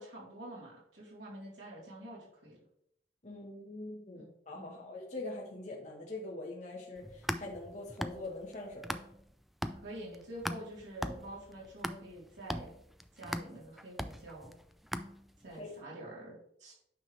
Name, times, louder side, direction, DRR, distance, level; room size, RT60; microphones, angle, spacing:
voice 1, 0.0-2.6 4.5-4.9 9.8-12.7 13.1-14.5 15.4-16.7, right 1 dB, 75° right, -5 dB, 3.5 m, -47 dB
voice 2, 3.2-9.0 15.5-15.7, left 2 dB, 40° left, -2 dB, 1.2 m, -43 dB
sound 1, 7.0-9.3 9.6-15.6, equal, ahead, 0.3 m, -40 dB
9.4 x 6.0 x 3.2 m, 0.73 s
head